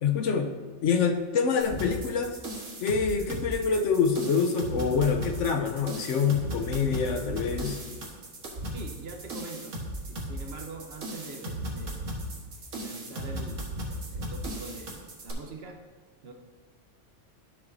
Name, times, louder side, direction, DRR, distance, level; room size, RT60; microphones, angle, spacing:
voice 1, 0.0-0.5 0.8-2.4 2.8-7.8, left 5 dB, 75° left, 5 dB, 1.0 m, -26 dB
sound 1, 1.6-15.3, right 1 dB, 85° right, 1.6 m, -36 dB
voice 2, 8.7-9.8 10.1-12.1 12.7-15.8 16.2-16.3, right 3 dB, 60° right, 3 dB, 1.0 m, -44 dB
12.0 x 6.0 x 2.6 m, 1.4 s
omnidirectional pair, 1.3 m